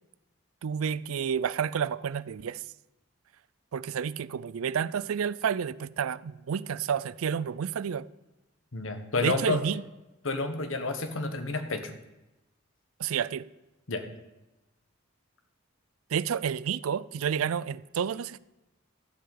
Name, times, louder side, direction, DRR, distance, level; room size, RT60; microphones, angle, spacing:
voice 1, 0.6-2.6 3.7-8.1 9.2-9.8 13.0-13.5 16.1-18.4, right 7 dB, 85° right, 0.4 m, -30 dB
voice 2, 8.7-9.6 10.2-11.9 13.9-14.0, left 3 dB, 70° left, 1.3 m, -30 dB
12.5 x 5.7 x 8.4 m
head